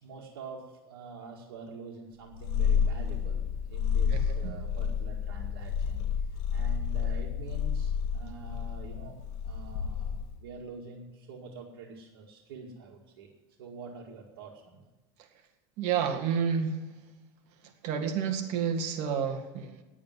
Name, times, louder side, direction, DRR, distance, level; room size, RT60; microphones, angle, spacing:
voice 1, 0.0-13.3 13.6-14.8, right 4 dB, 90° right, -3 dB, 2.1 m, -46 dB
Purr, 2.3-10.4, left 7 dB, 70° left, 1.2 m, -30 dB
voice 2, 15.8-16.8 17.8-19.8, right 7 dB, 60° right, 5 dB, 2.0 m, -29 dB
10.0 x 8.6 x 9.3 m, 1.1 s
supercardioid pair, 120°, 13 cm